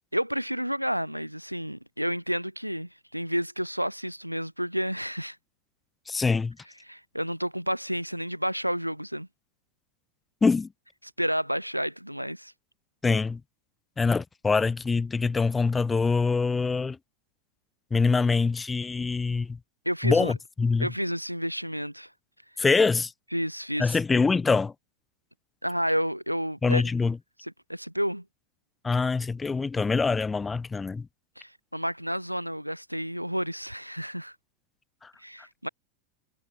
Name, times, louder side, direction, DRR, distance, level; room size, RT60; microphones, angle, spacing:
voice 1, 0.1-5.4 6.9-9.3 11.2-12.5 19.9-20.3 20.8-22.1 23.3-24.0 25.6-26.8 27.4-28.2 31.4-34.3 35.2-35.7, equal, 90° right, 0.7 m, -30 dB
voice 2, 6.1-6.6 10.4-10.7 13.0-13.4 14.0-17.0 17.9-19.6 20.0-20.9 22.6-23.1 23.8-24.7 26.6-27.2 28.8-31.1 35.0-35.1, left 4 dB, 15° left, 0.6 m, -24 dB
figure-of-eight pair, 90°, 0 cm